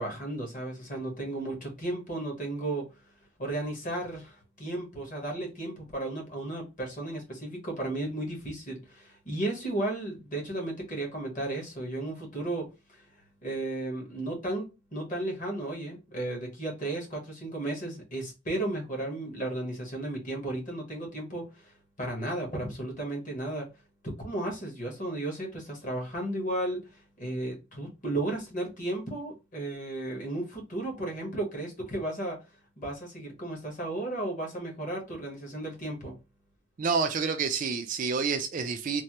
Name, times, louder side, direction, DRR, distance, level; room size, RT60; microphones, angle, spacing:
voice 1, 0.0-2.9 3.4-13.0 13.4-21.7 22.0-23.7 24.0-26.9 27.2-32.4 32.8-36.2, right 1 dB, 40° left, 1.1 m, -34 dB
voice 2, 36.8-39.0, right 5 dB, 40° right, 0.4 m, -28 dB
3.2 x 2.0 x 2.8 m
head